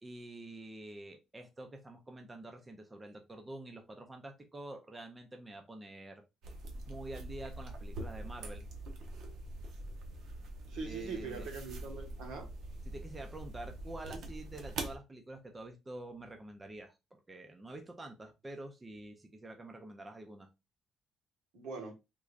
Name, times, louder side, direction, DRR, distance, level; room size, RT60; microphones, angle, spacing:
voice 1, 0.0-6.2 6.9-8.7 10.9-11.5 12.9-16.9 17.3-20.5, right 2 dB, 15° right, 0.4 m, -47 dB
sound 1, 6.4-15.0, right 2 dB, 60° right, 0.8 m, -44 dB
voice 2, 10.7-12.5 21.5-21.9, right 4 dB, 80° right, 1.2 m, -42 dB
3.6 x 3.2 x 2.4 m
cardioid pair, 170°, 0 cm